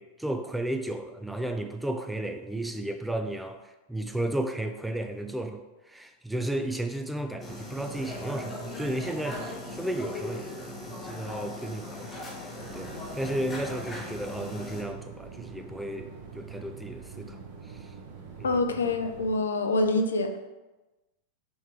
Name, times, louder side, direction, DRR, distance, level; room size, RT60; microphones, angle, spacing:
voice 1, 0.0-9.4 9.7-17.4 17.7-17.9 18.4-18.6, right 1 dB, 5° right, 6 dB, 0.3 m, -34 dB
Restaurant Crowd and Buzz, 7.4-14.8, left 2 dB, 15° left, 0.8 m, -39 dB
sound 1, 12.6-19.4, right 5 dB, 45° right, 0.6 m, -45 dB
voice 2, 18.4-20.4, left 2 dB, 70° left, 6 dB, 0.4 m, -26 dB
3.5 x 3.1 x 4.5 m, 1.1 s
figure-of-eight pair, 90°, 0 cm